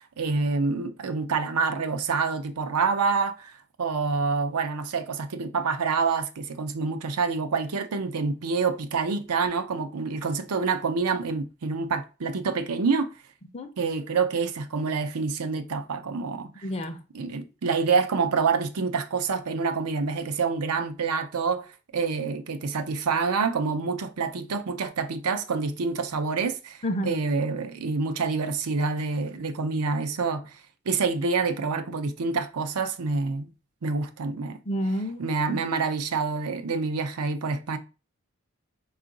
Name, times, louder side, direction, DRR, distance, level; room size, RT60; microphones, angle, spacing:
voice 1, 0.0-13.1 13.8-16.7 17.1-30.6 30.9-33.5 33.8-34.6 35.2-37.8, right 4 dB, 90° right, 0.6 m, -27 dB
voice 2, 16.6-17.0 26.8-27.2 34.6-35.6, equal, 25° left, 0.5 m, -30 dB
4.6 x 2.4 x 3.7 m
head